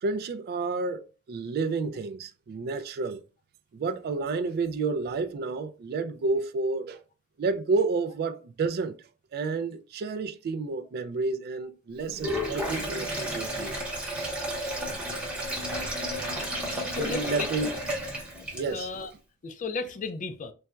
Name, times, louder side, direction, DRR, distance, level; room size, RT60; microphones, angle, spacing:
voice 1, 0.0-3.2 3.7-7.0 7.4-9.0 9.3-13.8 14.1-14.4 16.9-17.7 18.5-18.9, right 3 dB, 45° right, 0.3 m, -30 dB
Sink (filling or washing), 12.1-18.9, equal, 5° right, 0.8 m, -32 dB
voice 2, 16.9-17.5 18.5-19.1 19.4-20.5, left 4 dB, 35° left, 0.4 m, -34 dB
4.0 x 2.2 x 2.3 m
head